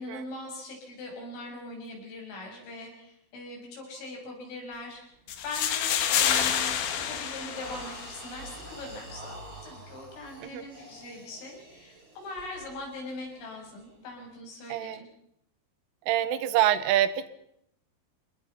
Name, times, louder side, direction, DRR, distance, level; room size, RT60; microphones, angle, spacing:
voice 1, 0.0-5.0 5.4-15.1, left 2 dB, 85° left, 0 dB, 9.4 m, -41 dB
sound 1, 4.7-5.0 5.4-5.7 6.2-14.3, right 2 dB, 25° right, 5.2 m, -47 dB
sound 2, 5.3-8.3, left 9 dB, 60° left, 2.9 m, -28 dB
voice 2, 14.7-15.0 16.1-17.3, right 12 dB, 80° right, 14 dB, 3.7 m, -26 dB
28.0 x 20.0 x 5.7 m, 0.73 s
omnidirectional pair, 5.7 m